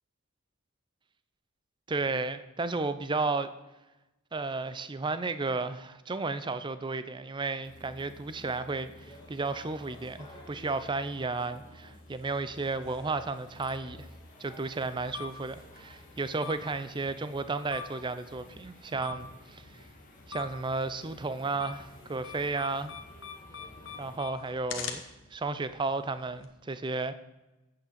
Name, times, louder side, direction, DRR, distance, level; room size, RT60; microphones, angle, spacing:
voice 1, 1.9-3.5 4.3-14.1 14.4-19.7 20.3-22.9 24.0-25.0 25.3-27.1, right 3 dB, 20° right, 0.5 m, -33 dB
sound 1, 7.6-24.2, left 1 dB, 40° left, 1.5 m, -54 dB
sound 2, 9.0-24.5, equal, 20° left, 2.4 m, -56 dB
sound 3, 12.5-26.4, left 7 dB, 60° left, 1.2 m, -46 dB
8.3 x 6.6 x 7.3 m
head